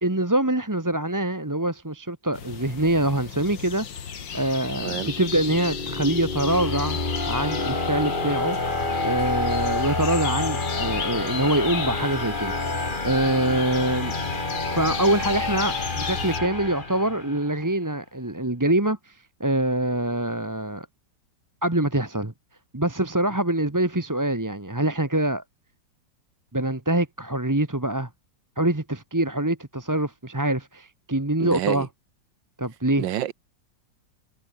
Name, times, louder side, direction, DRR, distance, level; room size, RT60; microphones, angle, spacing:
voice 1, 0.0-7.0 7.3-8.6 9.0-14.1 14.7-20.9 21.6-22.3 22.7-25.4 26.5-28.1 28.6-31.9 32.6-33.0, right 1 dB, 10° right, 1.3 m, -25 dB
sound 1, 2.3-16.4, left 7 dB, 85° left, 2.5 m, -35 dB
sound 2, 4.7-17.5, left 2 dB, 25° left, 2.9 m, -29 dB
voice 2, 4.8-5.1 31.4-31.9 33.0-33.3, right 12 dB, 80° right, 1.6 m, -28 dB
omnidirectional pair, 2.0 m